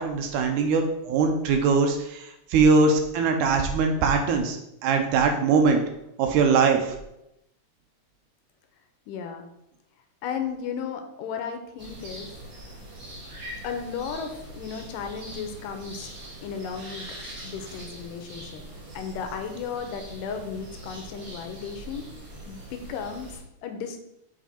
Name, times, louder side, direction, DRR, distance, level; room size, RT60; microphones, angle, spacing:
voice 1, 0.0-4.6 4.8-5.8 6.2-7.0, right 4 dB, 80° right, 4 dB, 2.0 m, -21 dB
voice 2, 9.1-9.5 10.2-12.3 13.6-16.1 16.4-17.1 17.4-18.6 18.9-22.1 22.5-24.0, left 6 dB, 90° left, 6 dB, 2.3 m, -34 dB
sound 1, 11.8-23.4, right 1 dB, 40° right, 1.7 m, -42 dB
7.4 x 3.3 x 4.3 m, 0.84 s
omnidirectional pair, 3.8 m